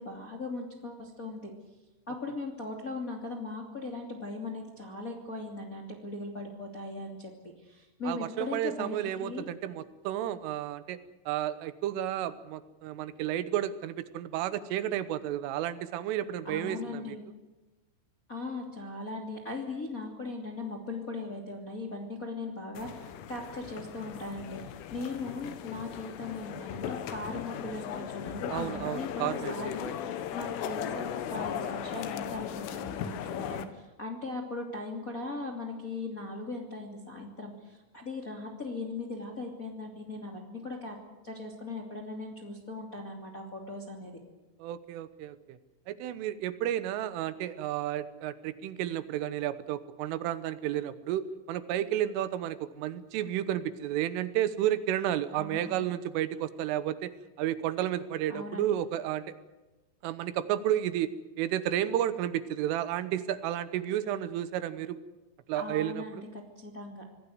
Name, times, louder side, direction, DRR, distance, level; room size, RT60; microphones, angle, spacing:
voice 1, 0.0-1.5 2.1-9.5 16.4-17.2 18.3-41.0 41.2-44.2 55.3-55.7 58.3-58.7 65.5-67.0, left 2 dB, 25° left, 2 dB, 2.1 m, -39 dB
voice 2, 8.1-11.0 11.3-17.2 28.5-29.7 44.6-45.6 45.9-57.1 57.4-59.4 60.0-61.1 61.4-65.0 65.5-66.2, right 11 dB, 80° right, 13 dB, 3.5 m, -32 dB
sound 1, 22.8-33.7, left 9 dB, 75° left, 3.9 m, -37 dB
26.0 x 18.5 x 8.0 m, 1.1 s
omnidirectional pair, 5.8 m